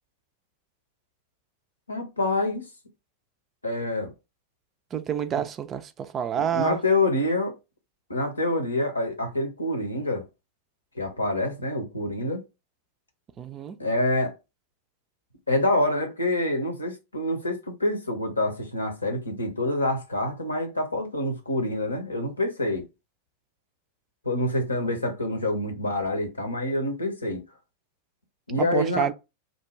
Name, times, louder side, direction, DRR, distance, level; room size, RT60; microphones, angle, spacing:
voice 1, 1.9-2.6 3.6-4.1 6.3-7.5 8.1-10.2 11.0-12.4 13.8-14.3 15.5-22.9 24.2-27.4 28.5-29.1, left 2 dB, 80° left, 0.8 m, -26 dB
voice 2, 4.9-6.8 13.4-13.8 28.6-29.1, right 8 dB, 25° right, 0.3 m, -28 dB
2.5 x 2.2 x 3.0 m
figure-of-eight pair, 90°, 0 cm